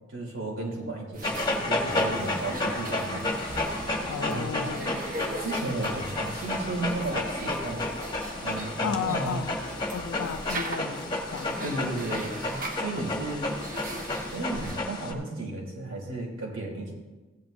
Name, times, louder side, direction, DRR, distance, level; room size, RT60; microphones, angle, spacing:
voice 1, 0.1-3.3 4.3-4.6 5.4-7.8 8.4-9.4 11.6-12.3 12.7-13.5 14.2-16.9, right 2 dB, 75° right, -2 dB, 3.2 m, -34 dB
sound 1, 1.1-14.8, right 1 dB, 45° right, 1.2 m, -38 dB
Dog, 1.2-15.1, left 2 dB, 20° left, 1.1 m, -32 dB
voice 2, 4.1-5.0 8.8-9.6 9.9-11.9, left 7 dB, 80° left, 7 dB, 0.3 m, -34 dB
16.0 x 11.0 x 2.6 m, 1.2 s
head